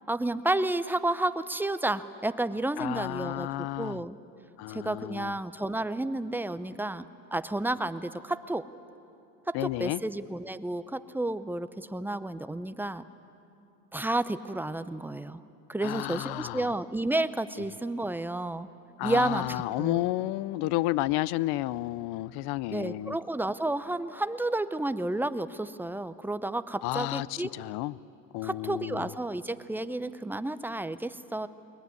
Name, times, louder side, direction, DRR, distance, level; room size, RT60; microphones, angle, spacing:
voice 1, 0.1-4.2 4.7-7.0 7.3-8.6 9.5-13.0 13.9-15.4 15.7-18.7 19.0-20.1 22.7-27.5 28.4-31.5, right 2 dB, 5° right, 13 dB, 0.5 m, -31 dB
voice 2, 2.8-4.0 4.6-5.3 9.5-10.0 15.8-16.7 19.0-23.2 26.8-27.3 27.5-27.9 28.3-29.1, left 17 dB, 50° left, 20 dB, 0.6 m, -31 dB
21.0 x 21.0 x 9.6 m, 2.8 s
hypercardioid pair, 95°, 49 cm